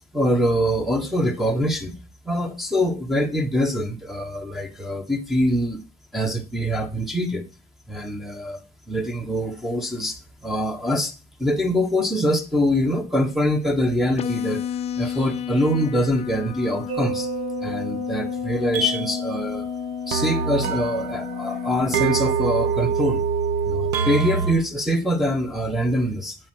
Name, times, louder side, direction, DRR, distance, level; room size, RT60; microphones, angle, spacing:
voice 1, 0.1-2.0 2.2-5.8 6.1-7.5 7.9-8.6 8.9-11.1 11.4-14.6 15.0-17.3 17.6-19.7 20.1-23.2 23.6-26.4, equal, ahead, 1 dB, 1.3 m, -24 dB
sound 1, 14.2-22.2, left 9 dB, 40° left, 0.4 m, -31 dB
sound 2, 16.9-24.5, right 7 dB, 90° right, 1.0 m, -26 dB
9.2 x 4.4 x 6.1 m, 0.32 s
cardioid pair, 110°, 17 cm